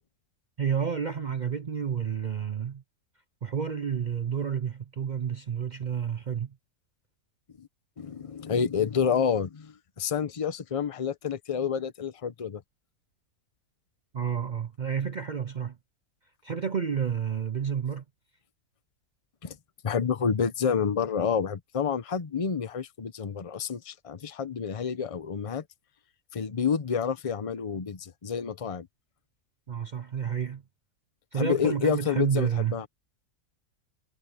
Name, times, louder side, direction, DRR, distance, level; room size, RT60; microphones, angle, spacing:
voice 1, 0.6-2.8 3.4-6.5 14.1-15.8 16.4-18.0 29.7-30.6 31.3-32.8, right 7 dB, 65° right, 0.4 m, -30 dB
voice 2, 8.0-12.6 19.4-19.6 19.8-25.6 26.3-28.9 31.4-32.9, left 7 dB, 30° left, 0.7 m, -29 dB
omnidirectional pair, 1.6 m